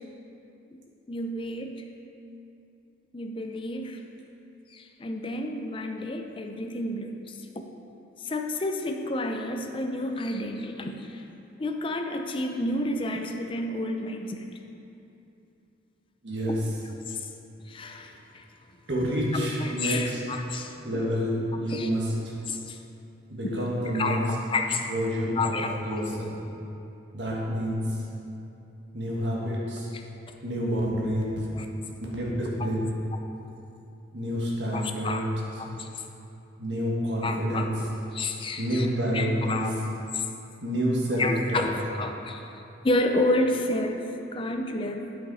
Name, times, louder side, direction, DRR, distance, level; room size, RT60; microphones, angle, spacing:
voice 1, 1.1-1.8 3.1-4.0 4.7-7.6 8.2-11.2 11.6-14.5 17.1-17.3 17.7-18.4 19.3-21.0 21.7-21.9 22.5-22.8 23.9-24.9 25.4-26.0 29.9-30.0 31.5-31.7 33.1-33.2 34.7-35.2 35.6-36.0 37.2-38.9 39.1-39.7 40.1-40.3 41.2-42.5 42.8-44.1 44.3-45.1, left 2 dB, 25° left, 4 dB, 0.5 m, -30 dB
voice 2, 16.2-16.6 18.9-20.2 20.8-22.4 23.3-24.2 24.9-26.4 27.1-28.0 28.9-29.9 30.4-31.5 32.1-33.0 34.1-35.3 36.6-37.8 38.6-39.7 40.6-41.7, equal, 65° right, -4 dB, 1.6 m, -28 dB
8.7 x 5.8 x 4.1 m, 2.8 s
head